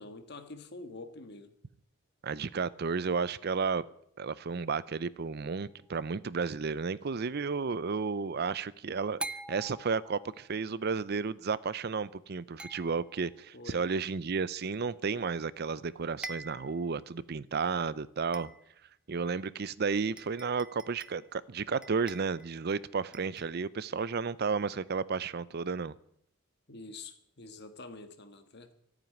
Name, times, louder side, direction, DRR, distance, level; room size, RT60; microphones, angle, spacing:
voice 1, 0.0-1.5 13.5-13.8 26.7-28.7, left 3 dB, 55° left, 1.6 m, -46 dB
voice 2, 2.2-3.8 4.2-9.2 9.5-18.5 19.1-25.9, right 5 dB, 50° right, 0.5 m, -32 dB
sound 1, 5.8-6.1 9.2-10.5 12.6-13.4 15.5-15.6 15.9-16.0 16.2-16.9 17.4-17.5 18.3-18.9 19.7-19.8 20.2-21.3 21.8-22.8 23.1-23.6, right 2 dB, 5° right, 0.6 m, -45 dB
14.0 x 9.1 x 9.1 m
head